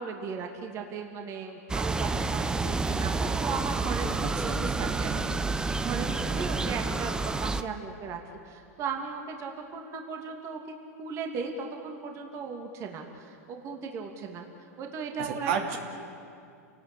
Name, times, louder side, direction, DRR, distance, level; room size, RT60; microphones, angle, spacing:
voice 1, 0.0-5.1 5.4-8.2 8.4-10.6 11.0-14.4 14.8-15.5, right 5 dB, 35° right, 2 dB, 2.7 m, -37 dB
sound 1, 1.7-7.6, right 3 dB, 10° right, 0.7 m, -29 dB
voice 2, 4.5-5.3 15.2-15.8, right 7 dB, 55° right, 3 dB, 2.8 m, -33 dB
29.0 x 19.0 x 8.6 m, 2.5 s
hypercardioid pair, 130°, 9 cm